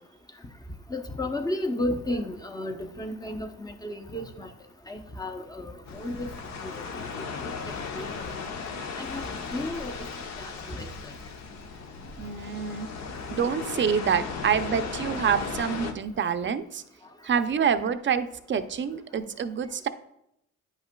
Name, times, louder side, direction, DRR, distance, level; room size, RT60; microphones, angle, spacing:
voice 1, 0.9-4.5 4.9-6.3 6.6-8.1 9.0-9.9 10.4-10.9, left 1 dB, 15° left, 6 dB, 0.7 m, -33 dB
sound 1, 5.9-15.9, left 5 dB, 65° left, 0.9 m, -36 dB
voice 2, 12.2-12.9 13.3-16.8 17.2-19.9, right 7 dB, 40° right, 10 dB, 0.5 m, -27 dB
9.4 x 5.5 x 2.2 m, 0.78 s
cardioid pair, 90°, 30 cm